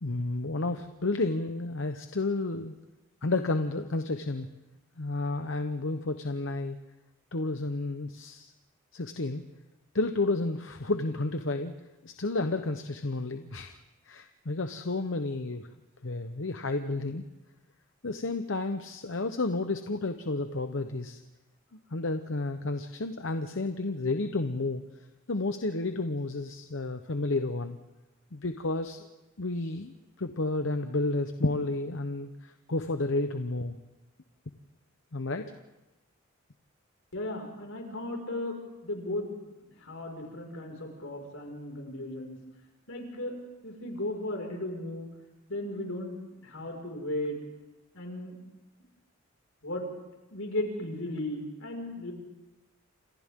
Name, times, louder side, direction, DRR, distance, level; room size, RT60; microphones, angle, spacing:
voice 1, 0.0-2.8 3.2-4.5 5.0-6.8 7.3-8.5 8.9-9.5 9.9-11.8 12.0-13.8 14.1-15.7 16.0-17.2 18.0-21.2 21.9-24.8 25.3-27.8 28.3-29.1 29.4-33.8 35.1-35.6, left 2 dB, 70° left, 7 dB, 1.0 m, -31 dB
voice 2, 37.1-39.5 39.8-42.4 42.9-43.3 43.6-45.1 45.5-47.4 47.9-48.4 49.6-49.9 50.3-52.1, left 1 dB, 90° left, 1 dB, 5.6 m, -36 dB
29.5 x 26.5 x 3.8 m, 1.0 s
head